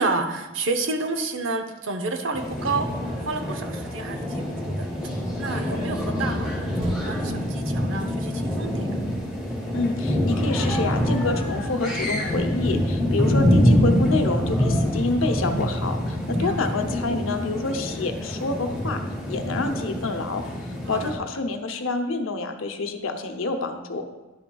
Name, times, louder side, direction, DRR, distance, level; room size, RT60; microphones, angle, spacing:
voice 1, 0.0-2.9 3.2-4.9 5.4-8.9 13.2-13.4 16.4-16.6 20.9-21.1, right 3 dB, 70° right, 6 dB, 0.7 m, -30 dB
sound 1, 2.3-21.1, equal, 5° right, 2.1 m, -25 dB
sound 2, 6.8-15.6 16.1-16.2, equal, 30° right, 1.3 m, -45 dB
voice 2, 9.7-19.0 19.3-20.4 20.9-24.0, left 3 dB, 85° left, 6 dB, 0.7 m, -27 dB
10.5 x 5.8 x 2.3 m, 1.1 s
head